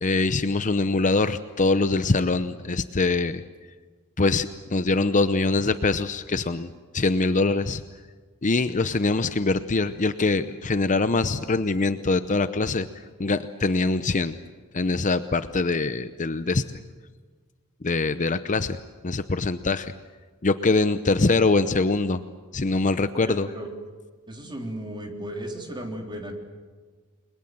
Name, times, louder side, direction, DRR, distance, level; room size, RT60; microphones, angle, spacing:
voice 1, 0.0-3.4 4.2-6.7 6.9-7.8 8.4-12.9 13.2-14.4 14.7-16.8 17.8-18.8 19.0-19.9 20.4-22.2 22.5-23.5, left 3 dB, 35° left, 11 dB, 0.7 m, -23 dB
voice 2, 23.1-23.7 24.3-26.3, right 1 dB, 20° right, 2 dB, 3.7 m, -35 dB
30.0 x 22.0 x 7.7 m, 1.5 s
head